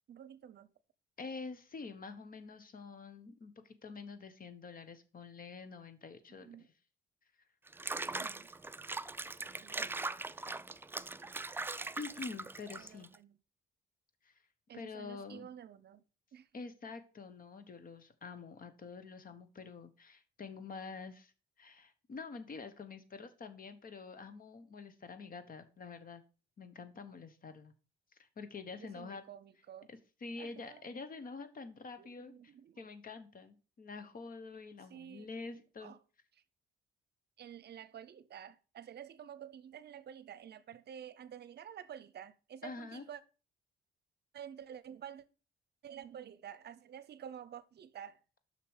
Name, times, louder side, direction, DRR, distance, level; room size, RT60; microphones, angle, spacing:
voice 1, 0.1-0.7 6.4-6.7 8.0-8.5 9.6-10.0 12.8-13.4 14.7-16.0 16.3-16.5 28.7-29.9 30.4-30.9 32.0-32.9 34.9-35.3 35.8-36.0 36.3-36.4 37.4-43.2 44.3-45.2 45.8-48.2, right 9 dB, 55° right, 0.7 m, -50 dB
voice 2, 1.2-6.5 12.0-13.1 14.2-14.3 14.7-15.5 16.5-21.3 21.6-26.2 26.6-27.7 28.2-29.2 29.9-32.3 32.8-35.9 42.6-43.0, left 4 dB, 45° left, 1.2 m, -47 dB
Water / Bathtub (filling or washing), 7.7-13.2, right 3 dB, 10° right, 0.4 m, -41 dB
6.8 x 6.0 x 5.0 m
cardioid pair, 90°, 20 cm